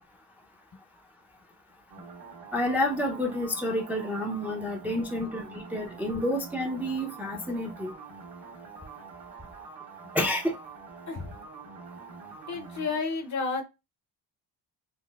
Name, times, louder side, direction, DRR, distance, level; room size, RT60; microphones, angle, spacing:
sound 1, 1.9-13.0, right 5 dB, 55° right, 1.3 m, -46 dB
voice 1, 2.5-7.9 10.1-10.5, left 1 dB, 5° right, 0.5 m, -29 dB
voice 2, 12.5-13.6, left 4 dB, 40° left, 0.7 m, -32 dB
4.0 x 2.1 x 2.3 m
cardioid pair, 95°, 45 cm